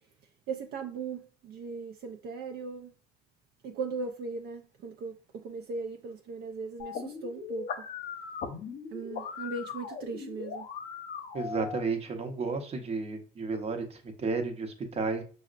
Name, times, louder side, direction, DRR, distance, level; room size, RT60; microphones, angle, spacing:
voice 1, 0.5-2.9 3.6-7.7 8.9-10.7, right 4 dB, 70° right, 0.4 m, -38 dB
sound 1, 6.8-11.8, left 6 dB, 65° left, 0.7 m, -39 dB
voice 2, 11.3-15.2, right 4 dB, 35° right, 0.7 m, -32 dB
5.6 x 2.1 x 2.4 m
cardioid pair, 110°, 17 cm